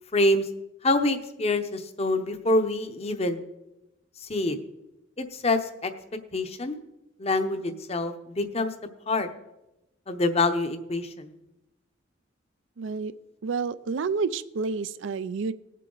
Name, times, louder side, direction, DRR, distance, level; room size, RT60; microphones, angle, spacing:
voice 1, 0.1-0.5 0.8-3.4 4.3-4.6 5.3-5.9 6.3-6.8 7.2-8.7 9.1-9.3 10.1-11.3, left 2 dB, 30° left, 9 dB, 0.8 m, -26 dB
voice 2, 12.8-13.1 13.4-15.5, right 4 dB, 70° right, 16 dB, 0.5 m, -29 dB
18.5 x 7.5 x 3.9 m, 0.95 s
head